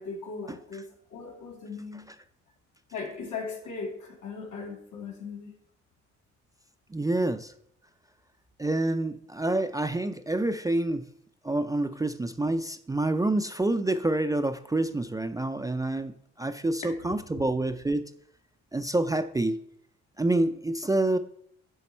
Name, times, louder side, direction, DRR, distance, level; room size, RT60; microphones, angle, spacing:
voice 1, 0.0-2.1 2.9-5.5, left 4 dB, 80° left, 1 dB, 2.0 m, -38 dB
voice 2, 6.9-7.5 8.6-11.0 11.4-18.0 18.7-19.6 20.2-21.2, right 2 dB, 10° right, 8 dB, 0.3 m, -27 dB
10.0 x 4.1 x 4.3 m, 0.66 s
cardioid pair, 90°, 30 cm